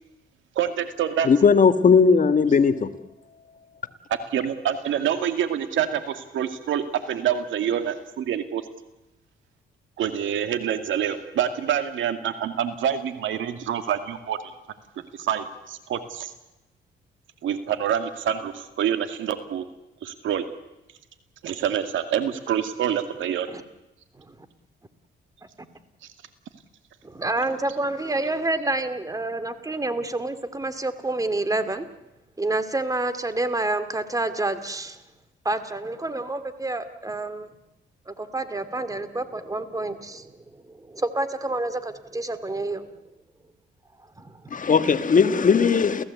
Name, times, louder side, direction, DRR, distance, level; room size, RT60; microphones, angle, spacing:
voice 1, 0.6-1.3 4.3-8.6 10.0-14.5 15.2-16.3 17.4-19.7 20.0-20.4 21.4-23.5, right 9 dB, 75° right, 2.3 m, -26 dB
voice 2, 1.2-2.9 44.5-46.0, left 5 dB, 40° left, 1.6 m, -18 dB
voice 3, 27.0-31.9 32.4-35.0 35.4-37.5 38.1-42.9 44.2-44.6, right 2 dB, 15° right, 2.3 m, -28 dB
30.0 x 16.0 x 8.3 m
cardioid pair, 90°, 20 cm